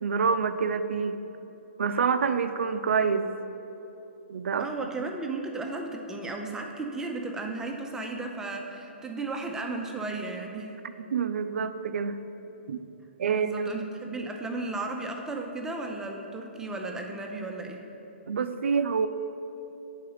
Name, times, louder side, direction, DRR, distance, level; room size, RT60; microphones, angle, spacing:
voice 1, 0.0-1.2 1.8-3.3 4.3-4.7 11.1-12.2 12.7-12.8 13.2-13.7 18.3-19.1, right 6 dB, 75° right, 10 dB, 0.4 m, -27 dB
voice 2, 4.6-10.8 13.2-17.9, right 3 dB, 10° right, 2 dB, 0.5 m, -34 dB
8.4 x 3.9 x 4.7 m, 3.0 s
hypercardioid pair, 140°, 7 cm